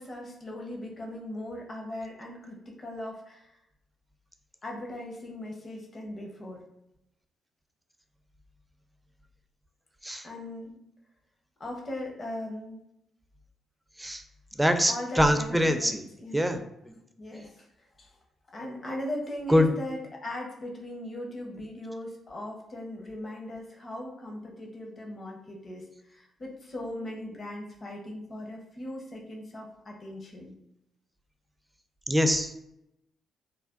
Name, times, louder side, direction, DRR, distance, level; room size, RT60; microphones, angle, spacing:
voice 1, 0.0-3.6 4.6-6.6 10.2-10.8 11.6-12.8 14.9-15.9 16.2-16.4 16.9-18.2 18.5-30.5, left 1 dB, 45° left, 0 dB, 0.8 m, -39 dB
voice 2, 14.6-16.0 16.3-16.6 19.5-19.7 32.1-32.5, equal, 10° right, 7 dB, 0.4 m, -23 dB
3.2 x 2.2 x 2.4 m, 0.82 s
supercardioid pair, 50°, 0 cm